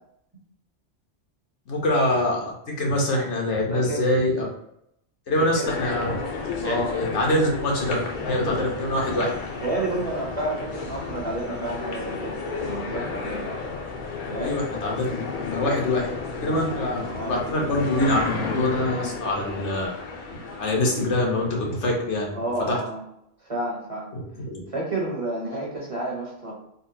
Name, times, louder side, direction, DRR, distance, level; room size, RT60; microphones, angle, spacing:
voice 1, 1.7-4.5 5.3-6.2 6.6-9.3 14.4-16.1 16.4-19.9 20.6-22.3 22.7-22.8 24.1-24.2 24.5-24.6, left 1 dB, 85° left, -1 dB, 1.2 m, -24 dB
voice 2, 3.7-4.1 5.4-5.7 6.6-6.9 9.6-12.3 12.6-13.4 14.2-14.6 17.0-17.4 22.3-23.0 23.4-24.1 24.7-26.5, right 2 dB, 35° right, -4 dB, 0.7 m, -30 dB
sound 1, 5.6-22.3, left 4 dB, 55° left, 0.6 m, -33 dB
3.8 x 2.1 x 2.7 m, 0.76 s
omnidirectional pair, 1.2 m